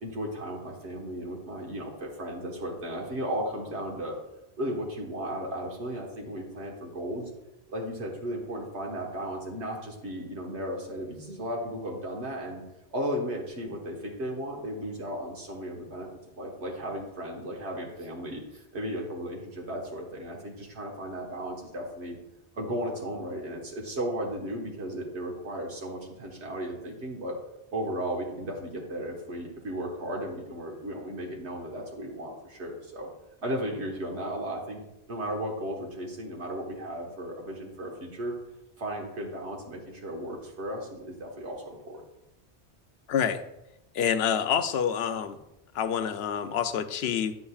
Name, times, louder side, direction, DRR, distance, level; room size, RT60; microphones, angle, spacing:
voice 1, 0.0-4.2 4.6-7.3 7.7-12.6 12.9-16.1 16.4-22.2 22.5-27.4 27.7-33.1 33.4-34.8 35.1-38.3 38.8-42.0, equal, 85° right, -1 dB, 1.6 m, -35 dB
voice 2, 43.1-43.4 43.9-45.4 45.7-47.4, left 8 dB, 70° left, 9 dB, 0.8 m, -27 dB
9.7 x 7.9 x 2.4 m, 0.88 s
omnidirectional pair, 1.1 m